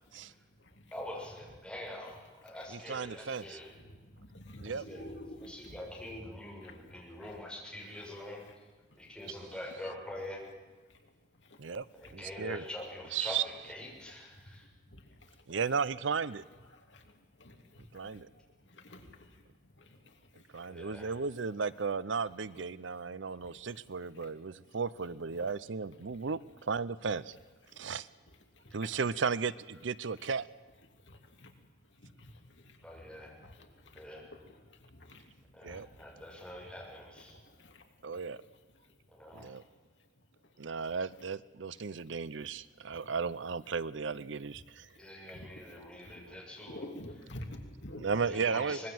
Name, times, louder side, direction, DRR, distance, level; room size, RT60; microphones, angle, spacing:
voice 1, 0.1-0.9 2.5-2.7 3.4-5.8 6.0-6.1 6.6-7.3 7.9-8.0 8.4-8.6 8.9-9.3 10.9-12.1 14.0-15.6 16.7-21.2 23.2-24.8 25.3-25.5 26.1-26.4 27.6-27.9 28.3-29.0 30.2-30.3 30.9-31.6 31.8-36.8 37.1-39.0 39.3-39.7 40.0-40.1 40.4-40.5 40.8-40.9 41.8-42.5 42.8-43.2 44.1-44.2 44.9-48.2, left 1 dB, 75° left, 4 dB, 2.9 m, -53 dB
voice 2, 0.9-3.7 4.7-5.0 5.5-8.4 9.0-10.4 11.9-14.7 20.7-21.2 32.8-33.3 33.9-34.2 35.5-37.3 39.1-39.5 44.9-46.8 48.2-48.9, left 1 dB, 5° left, -3 dB, 6.9 m, -45 dB
voice 3, 2.7-3.6 4.6-4.8 11.6-11.9 12.1-12.6 13.1-13.4 15.5-16.4 17.9-18.3 20.5-27.4 27.8-28.1 28.7-30.5 35.6-35.9 38.0-38.4 39.3-39.6 40.6-44.9 48.0-48.9, right 5 dB, 80° right, 18 dB, 0.6 m, -35 dB
24.5 x 21.0 x 7.8 m, 1.3 s
head